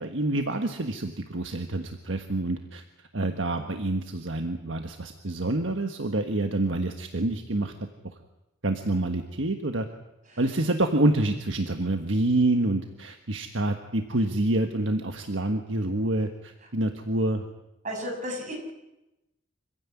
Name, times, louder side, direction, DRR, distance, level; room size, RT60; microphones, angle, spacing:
voice 1, 0.0-2.8 3.1-7.7 8.6-9.9 10.4-17.4, right 2 dB, 65° right, 5 dB, 1.5 m, -27 dB
voice 2, 17.8-18.5, equal, 40° right, 1 dB, 7.0 m, -32 dB
26.0 x 16.0 x 9.7 m, 0.95 s
head